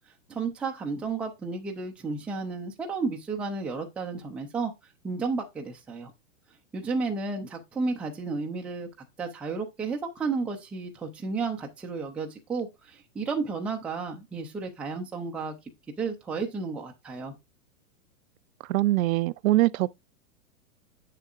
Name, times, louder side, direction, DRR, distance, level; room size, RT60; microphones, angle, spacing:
voice 1, 0.3-4.7 5.0-6.1 6.7-8.9 9.2-15.5 16.0-17.3, right 4 dB, 5° right, 0.4 m, -32 dB
voice 2, 18.7-19.9, right 16 dB, 65° right, 0.5 m, -23 dB
7.4 x 6.8 x 2.4 m
hypercardioid pair, 130°, 46 cm